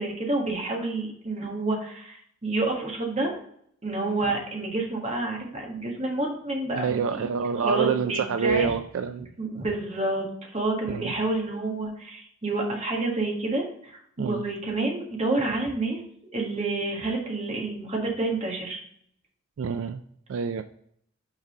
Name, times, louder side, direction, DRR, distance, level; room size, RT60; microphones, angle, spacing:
voice 1, 0.0-3.4 3.8-7.3 7.5-8.7 9.4-10.3 10.5-16.0 16.3-18.8, right 2 dB, 30° right, 0 dB, 1.6 m, -29 dB
voice 2, 6.8-9.3 10.9-11.1 14.2-14.4 19.6-20.0 20.3-20.6, right 6 dB, 65° right, 9 dB, 0.3 m, -27 dB
6.1 x 4.0 x 5.3 m, 0.66 s
head